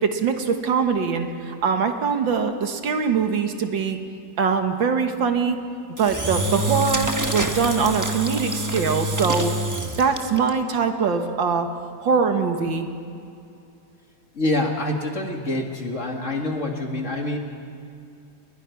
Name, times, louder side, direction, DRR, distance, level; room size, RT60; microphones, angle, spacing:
voice 1, 0.0-4.0 4.4-5.6 6.0-9.5 10.0-11.7 12.0-12.9, right 5 dB, 70° right, 6 dB, 2.1 m, -22 dB
Engine / Drill, 6.0-10.5, right 1 dB, 15° right, 0.7 m, -26 dB
voice 2, 14.3-17.4, left 2 dB, 40° left, 2 dB, 2.2 m, -26 dB
30.0 x 20.5 x 5.9 m, 2.5 s
omnidirectional pair, 2.2 m